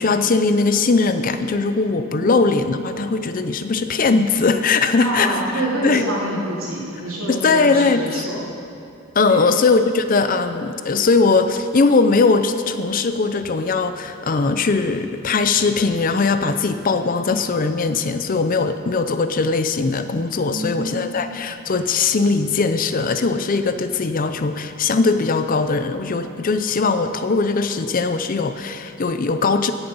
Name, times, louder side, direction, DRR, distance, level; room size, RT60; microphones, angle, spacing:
voice 1, 0.0-5.3 5.8-6.0 7.3-8.2 9.1-29.7, left 4 dB, 40° left, 9 dB, 0.5 m, -20 dB
voice 2, 5.0-8.4 9.3-9.4 20.5-21.1, right 1 dB, 75° right, -6 dB, 3.3 m, -26 dB
16.5 x 7.0 x 5.3 m, 2.7 s
head